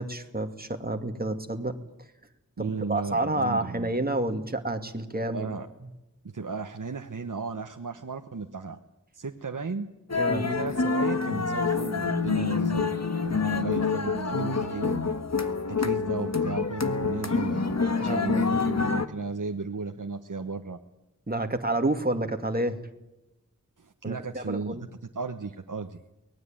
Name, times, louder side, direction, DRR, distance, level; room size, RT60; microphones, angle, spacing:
voice 1, 0.0-1.8 2.6-5.5 10.2-10.5 18.0-18.6 21.3-22.8 24.0-24.8, right 2 dB, 30° right, 5 dB, 2.3 m, -29 dB
voice 2, 2.6-3.9 5.2-5.7 6.2-8.8 9.1-9.9 10.4-15.2 15.7-20.8 23.8-24.9 25.1-26.0, right 4 dB, 80° right, 5 dB, 1.2 m, -35 dB
sound 1, 10.1-19.1, left 4 dB, 55° left, 1.6 m, -27 dB
23.5 x 19.5 x 8.9 m, 0.94 s
wide cardioid pair, 55°, 31 cm